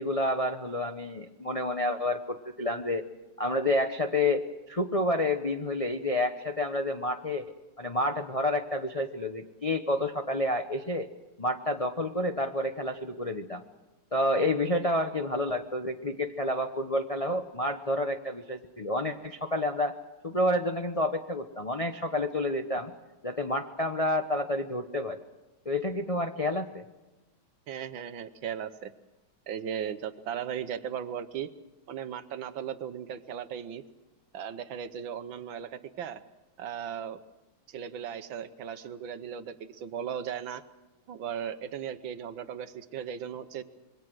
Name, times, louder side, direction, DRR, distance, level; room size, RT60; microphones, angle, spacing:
voice 1, 0.0-3.0 3.4-4.4 4.7-7.5 7.8-11.1 11.4-13.6 14.1-19.9 20.2-22.9 23.2-25.2 25.6-26.8, left 1 dB, 35° left, 5 dB, 0.5 m, -29 dB
voice 2, 27.7-28.9 29.5-31.5 31.9-33.8 34.3-36.2 36.6-37.2 37.7-40.6 41.1-43.6, right 8 dB, 70° right, 12 dB, 1.6 m, -37 dB
26.5 x 22.5 x 6.3 m, 1.1 s
omnidirectional pair, 2.3 m